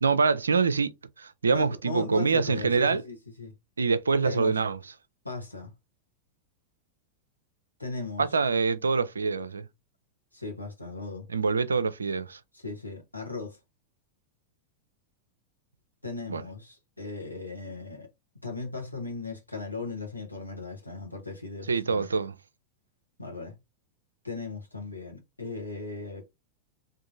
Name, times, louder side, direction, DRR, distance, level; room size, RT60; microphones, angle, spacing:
voice 1, 0.0-3.0 3.8-4.8 8.2-9.7 11.3-12.4 16.3-16.4 21.7-22.3, right 4 dB, 75° right, 0.4 m, -25 dB
voice 2, 1.5-3.5 4.2-4.6 5.2-5.7 7.8-8.3 10.3-11.3 12.5-13.6 16.0-18.1 18.4-22.1 23.2-23.5 24.2-26.3, left 3 dB, 85° left, 0.9 m, -37 dB
3.5 x 2.5 x 2.5 m
figure-of-eight pair, 90°, 0 cm